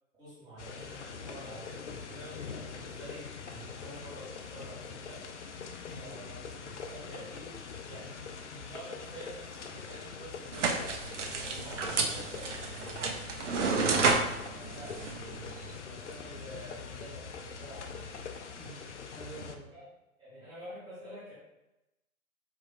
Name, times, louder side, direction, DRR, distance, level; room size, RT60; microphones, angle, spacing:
voice 1, 0.1-5.2 6.0-8.2 8.5-10.7 11.2-13.1 14.5-18.3 19.5-19.9 20.2-21.3, right 1 dB, 10° right, -11 dB, 1.4 m, -48 dB
sound 1, 0.6-19.6, left 5 dB, 55° left, 0.5 m, -43 dB
sound 2, 10.5-15.8, right 4 dB, 55° right, 0.6 m, -31 dB
voice 2, 18.5-18.8 19.1-19.6, right 3 dB, 15° left, -9 dB, 1.4 m, -49 dB
4.5 x 2.9 x 2.4 m, 0.94 s
figure-of-eight pair, 120°, 43 cm